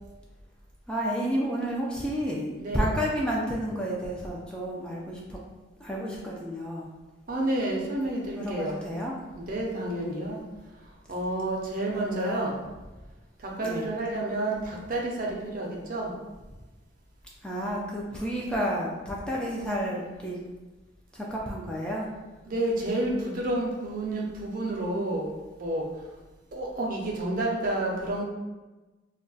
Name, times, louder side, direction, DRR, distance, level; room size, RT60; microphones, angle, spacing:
voice 1, 0.9-2.5 2.7-5.4 5.8-6.9 8.2-9.1 9.7-10.3 11.9-12.5 13.6-13.9 17.4-20.4 21.1-22.1, equal, 5° left, -4 dB, 0.3 m, -31 dB
voice 2, 7.3-8.9 9.3-10.4 11.1-12.6 13.4-16.1 22.5-25.3 25.6-25.9 26.5-28.2, right 1 dB, 45° right, -1 dB, 0.5 m, -30 dB
2.3 x 2.1 x 3.8 m, 1.2 s
head